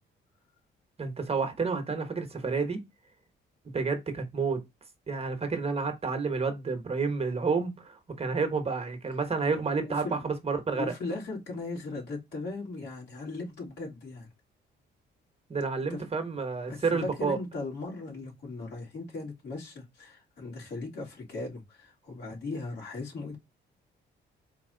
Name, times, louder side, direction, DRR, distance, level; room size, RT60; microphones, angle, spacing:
voice 1, 1.0-2.8 3.7-4.6 5.1-10.9 15.5-17.4, right 4 dB, 30° right, 1.1 m, -30 dB
voice 2, 9.8-10.2 10.7-14.3 15.9-16.0 16.7-23.4, left 3 dB, 60° left, 3.0 m, -38 dB
4.5 x 2.9 x 3.8 m
cardioid pair, 90°, 20 cm